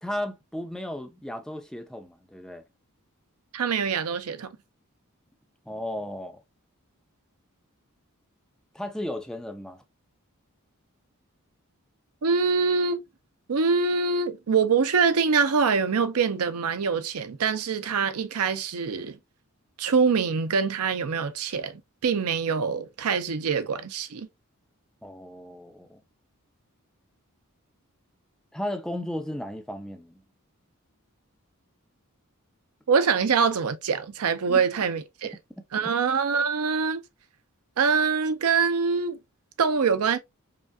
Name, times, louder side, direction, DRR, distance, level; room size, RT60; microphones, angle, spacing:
voice 1, 0.0-2.6 5.7-6.4 8.7-9.8 25.0-26.0 28.5-30.2 34.5-34.6 35.8-35.9, left 1 dB, 5° left, 0.5 m, -35 dB
voice 2, 3.5-4.5 12.2-13.0 13.5-19.2 19.8-24.3 32.9-35.4 35.7-37.0 37.8-39.2 39.6-40.2, right 5 dB, 80° right, 0.6 m, -24 dB
5.1 x 2.4 x 2.2 m
head